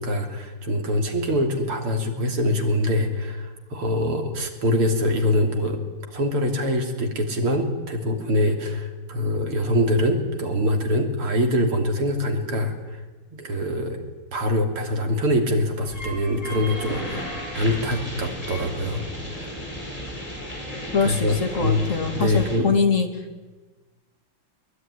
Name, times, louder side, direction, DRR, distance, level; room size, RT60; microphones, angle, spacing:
voice 1, 0.0-5.8 6.1-13.0 13.3-14.0 14.3-19.6 21.0-21.4 21.6-22.7, left 1 dB, 80° right, 4 dB, 4.0 m, -24 dB
sound 1, 15.8-22.6, equal, 15° left, 4.9 m, -34 dB
voice 2, 20.9-23.1, left 5 dB, 35° left, 6 dB, 2.6 m, -23 dB
22.0 x 21.0 x 10.0 m, 1.2 s
omnidirectional pair, 2.4 m